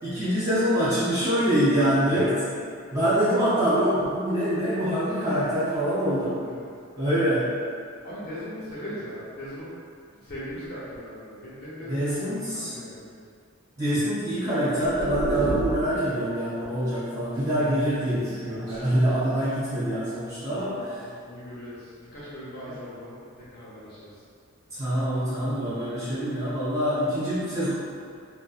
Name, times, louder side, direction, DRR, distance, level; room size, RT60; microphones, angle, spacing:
voice 1, 0.0-2.4 2.9-6.4 6.9-7.5 11.9-12.7 13.8-20.7 24.7-27.7, equal, 15° right, -14 dB, 1.2 m, -25 dB
voice 2, 8.0-9.7 10.1-13.2 20.5-24.2, equal, 45° left, -9 dB, 0.6 m, -39 dB
sound 1, 14.8-16.1 17.9-19.0 19.8-20.2, equal, 65° right, 0.7 m, -31 dB
3.5 x 2.2 x 2.4 m, 2.3 s
head